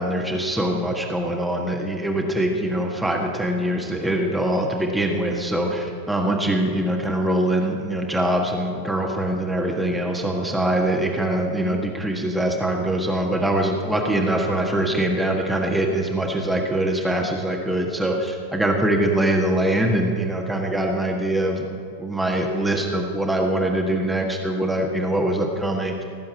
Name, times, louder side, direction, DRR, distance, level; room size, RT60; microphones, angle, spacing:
voice 1, 0.0-26.0, right 1 dB, 5° right, 1 dB, 1.6 m, -23 dB
18.0 x 7.6 x 8.8 m, 2.4 s
figure-of-eight pair, 90°, 0 cm